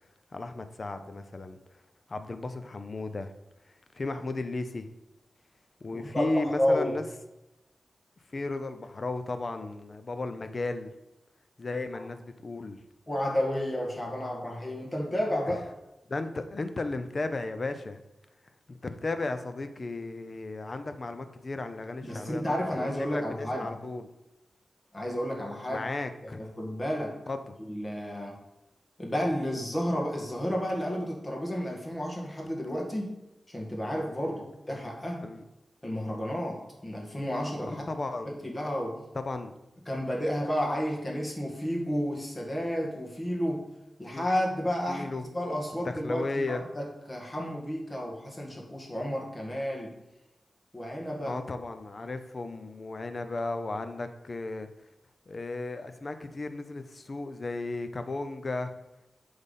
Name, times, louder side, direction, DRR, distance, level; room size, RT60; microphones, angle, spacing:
voice 1, 0.3-1.8 2.1-3.3 3.9-4.9 5.8-7.1 8.3-10.9 11.6-12.8 15.5-15.6 16.1-18.0 18.7-24.1 25.7-26.4 27.3-27.6 34.2-34.5 35.2-35.4 37.7-38.3 39.1-39.5 44.1-44.3 44.9-45.2 45.7-46.6 51.2-54.7 55.3-58.7, left 2 dB, 45° left, 9 dB, 0.7 m, -35 dB
voice 2, 6.0-7.0 11.9-12.0 13.1-15.6 22.0-23.7 24.9-25.9 26.4-27.2 27.7-28.4 29.0-33.2 33.5-35.3 35.8-37.9 38.3-39.0 39.9-43.7 44.0-49.9 50.7-51.4, equal, 25° left, 0 dB, 1.8 m, -31 dB
8.1 x 3.5 x 5.5 m, 0.94 s
wide cardioid pair, 80°, 0 cm